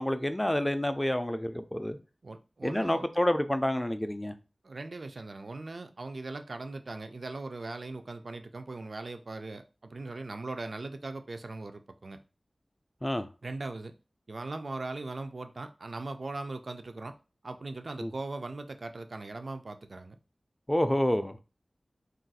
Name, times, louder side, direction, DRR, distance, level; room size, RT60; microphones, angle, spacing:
voice 1, 0.0-2.0 2.6-4.3 13.0-13.3 18.0-18.1 20.7-21.4, left 1 dB, 15° left, 0.3 m, -28 dB
voice 2, 2.2-3.1 4.6-12.2 13.4-13.9 14.3-17.2 17.4-20.2, right 2 dB, 70° right, 0.3 m, -39 dB
2.4 x 2.3 x 4.0 m
wide cardioid pair, 60°, 0 cm